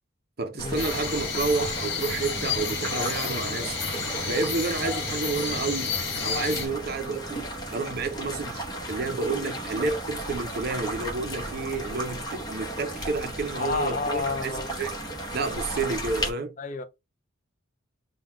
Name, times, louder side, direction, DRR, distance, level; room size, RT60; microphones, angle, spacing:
voice 1, 0.4-5.9 6.2-7.4 7.7-14.9 15.3-16.5, right 3 dB, 45° right, 0.6 m, -30 dB
sound 1, 0.6-16.3, right 1 dB, 20° left, 0.8 m, -35 dB
sound 2, 0.8-6.7, left 5 dB, 55° left, 1.1 m, -31 dB
voice 2, 13.6-14.8 16.6-16.8, left 4 dB, 35° left, 0.4 m, -30 dB
3.7 x 2.3 x 4.5 m
head